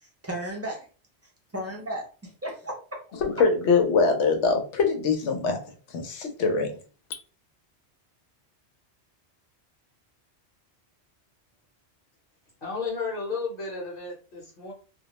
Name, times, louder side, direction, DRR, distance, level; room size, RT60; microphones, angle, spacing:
voice 1, 0.0-0.9 1.5-3.0, right 1 dB, 25° right, -1 dB, 0.3 m, -35 dB
voice 2, 3.2-5.6 5.9-6.7, left 4 dB, 90° left, 4 dB, 0.9 m, -23 dB
voice 3, 12.6-14.7, left 4 dB, 55° left, -3 dB, 0.9 m, -33 dB
2.3 x 2.1 x 2.9 m, 0.37 s
omnidirectional pair, 1.1 m